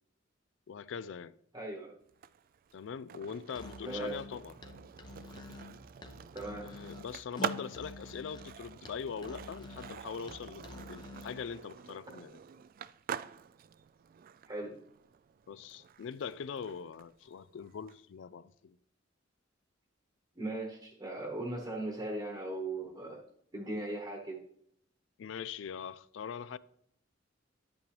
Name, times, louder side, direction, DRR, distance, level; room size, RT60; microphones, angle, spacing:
voice 1, 0.7-1.4 2.7-4.6 6.6-12.4 15.5-18.8 25.2-26.6, left 6 dB, 70° left, 0.4 m, -42 dB
voice 2, 1.5-1.9 3.9-4.2 6.3-6.7 14.5-14.8 20.4-23.2 23.5-24.4, right 2 dB, 25° right, 1.1 m, -38 dB
Skateboard, 2.1-18.0, right 8 dB, 50° right, 0.3 m, -46 dB
Musical instrument, 3.5-11.5, left 2 dB, 25° left, 0.6 m, -48 dB
10.5 x 8.3 x 3.3 m
head